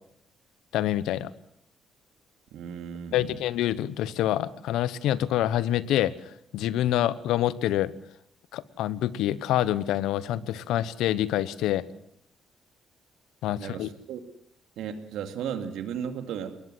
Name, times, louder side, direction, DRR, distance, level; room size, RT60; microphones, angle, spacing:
voice 1, 0.7-1.3 3.1-6.1 6.5-7.9 8.5-11.8 13.4-13.9, left 12 dB, 90° left, 17 dB, 0.9 m, -26 dB
voice 2, 2.5-3.4 13.6-14.2 14.8-16.6, right 8 dB, 85° right, 8 dB, 2.3 m, -35 dB
22.0 x 19.5 x 7.7 m, 0.69 s
cardioid pair, 90°, 0 cm